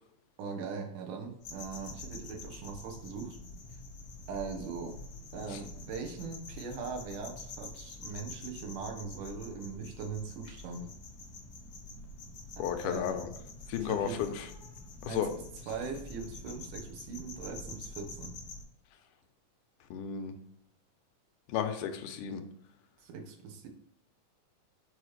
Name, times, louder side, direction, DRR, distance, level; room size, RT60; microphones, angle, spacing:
voice 1, 0.4-3.4 4.3-5.0 5.3-10.9 12.6-13.2 13.8-14.2 15.1-15.3 15.7-18.3 23.0-23.7, right 5 dB, 80° right, 3 dB, 2.6 m, -40 dB
sound 1, 1.4-18.6, left 3 dB, 70° left, 0.9 m, -47 dB
voice 2, 12.6-13.3 13.7-14.5 15.0-15.3 19.9-20.3 21.5-22.4, left 9 dB, 85° left, 7 dB, 2.1 m, -33 dB
6.8 x 4.8 x 3.1 m, 0.72 s
omnidirectional pair, 3.7 m